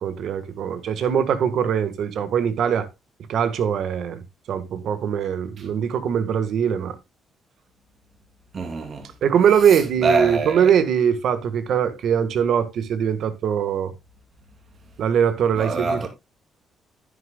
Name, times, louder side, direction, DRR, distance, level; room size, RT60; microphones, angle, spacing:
voice 1, 0.0-2.9 3.3-4.2 4.5-7.0 9.2-13.9 15.0-16.1, right 8 dB, 70° right, 1.6 m, -22 dB
voice 2, 8.5-9.1 9.7-10.7 15.5-16.1, right 3 dB, 45° right, 3.0 m, -25 dB
10.5 x 10.0 x 2.3 m
cardioid pair, 90°, 0 cm